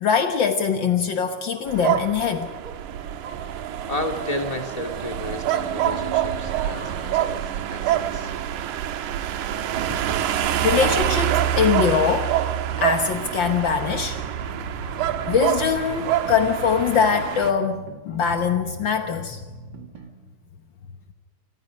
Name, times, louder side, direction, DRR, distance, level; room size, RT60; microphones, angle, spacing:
voice 1, 0.0-2.5 9.9-10.0 10.6-12.4 12.8-14.2 15.2-19.4, left 6 dB, 75° left, 6 dB, 1.0 m, -22 dB
sound 1, 1.3-2.1 2.5-2.8 3.2-3.4 3.8-4.1 4.5-5.3 6.2-7.2 8.2-9.2 10.0-10.2 10.7-10.9 11.7-12.0 13.2-13.4 13.9-15.2 15.7-16.8, right 2 dB, 15° right, 3.1 m, -46 dB
sound 2, 1.7-17.5, right 11 dB, 75° right, 2.5 m, -26 dB
voice 2, 3.9-8.3, left 2 dB, 15° left, 3 dB, 2.2 m, -32 dB
sound 3, 12.7-20.1, right 1 dB, 40° right, 2.6 m, -42 dB
27.5 x 20.5 x 5.3 m, 1.4 s
omnidirectional pair, 3.7 m